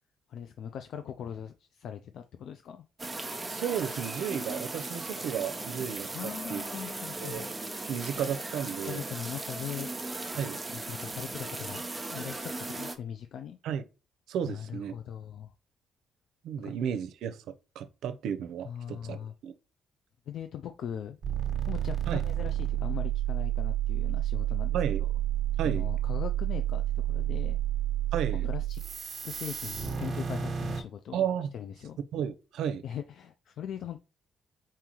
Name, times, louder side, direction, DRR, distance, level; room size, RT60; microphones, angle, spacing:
voice 1, 0.3-2.8 6.1-7.5 8.8-9.9 10.4-13.6 14.5-15.5 16.6-16.7 18.6-19.3 20.3-21.2 21.6-25.1 25.6-27.6 28.4-28.8 29.2-31.3 31.5-32.0 32.8-34.0, left 9 dB, 70° left, 0.4 m, -40 dB
sound 1, 3.0-13.0, right 2 dB, 20° right, 0.8 m, -37 dB
voice 2, 3.5-6.1 6.5-6.6 7.2-7.4 7.9-9.0 10.3-10.6 13.6-13.8 14.3-14.9 16.4-17.4 17.8-19.2 19.4-19.5 22.1-22.2 24.7-25.0 25.6-25.9 28.1-28.5 31.1-31.5 32.1-32.8, right 8 dB, 80° right, 0.6 m, -33 dB
sound 2, 21.2-30.8, right 11 dB, 45° right, 1.2 m, -30 dB
4.3 x 3.8 x 3.0 m
cardioid pair, 90°, 0 cm